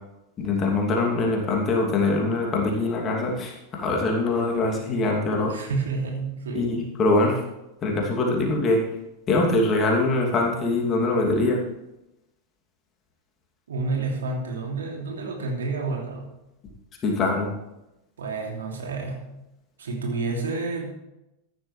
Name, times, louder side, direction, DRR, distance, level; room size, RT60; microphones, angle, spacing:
voice 1, 0.4-5.5 6.5-7.4 7.8-8.8 9.3-11.6 17.0-17.5, left 2 dB, 25° left, 0 dB, 2.8 m, -23 dB
voice 2, 5.5-6.8 13.7-16.3 18.2-19.3 19.8-20.9, right 3 dB, 65° right, 0 dB, 2.8 m, -29 dB
15.0 x 11.0 x 3.4 m, 0.91 s
figure-of-eight pair, 90°, 0 cm